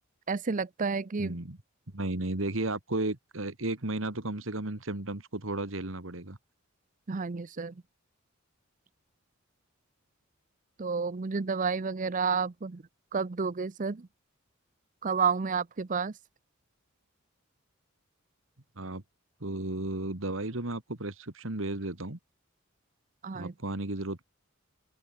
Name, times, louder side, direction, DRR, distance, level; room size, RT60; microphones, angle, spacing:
voice 1, 0.3-1.4 7.1-7.8 10.8-12.8 13.1-14.1 15.0-16.1 23.2-23.5, right 5 dB, 40° right, 0.5 m, -30 dB
voice 2, 1.2-1.6 1.9-6.4 18.8-19.0 19.4-22.2 23.3-24.2, right 2 dB, 65° right, 2.2 m, -34 dB
open air
head